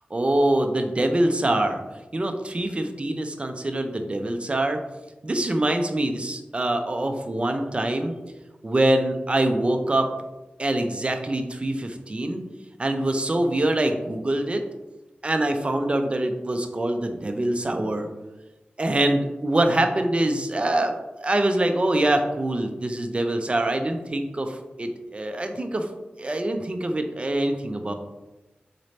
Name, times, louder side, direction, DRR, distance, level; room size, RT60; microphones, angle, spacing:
voice 1, 0.1-1.8 2.1-4.8 5.2-8.1 8.6-10.1 10.6-12.4 12.8-14.6 15.2-18.1 18.8-25.9 26.2-27.9, right 1 dB, 35° right, 5 dB, 0.5 m, -24 dB
4.1 x 2.6 x 3.2 m, 1.1 s
wide cardioid pair, 65°, 4 cm